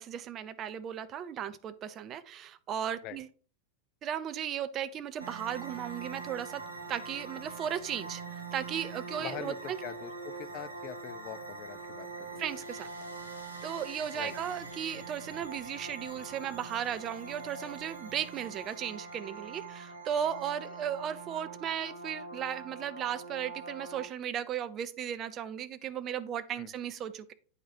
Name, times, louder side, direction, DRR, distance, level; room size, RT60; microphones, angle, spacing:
voice 1, 0.0-3.3 4.0-6.6 6.9-9.8 12.4-12.9 13.6-27.3, right 9 dB, 30° right, 12 dB, 0.5 m, -36 dB
sound 1, 5.2-24.1, right 4 dB, 80° right, 1.1 m, -43 dB
voice 2, 9.2-12.4 14.1-14.3 26.6-26.7, left 12 dB, 40° left, 12 dB, 0.4 m, -43 dB
8.8 x 4.6 x 2.8 m, 0.41 s
figure-of-eight pair, 90°, 0 cm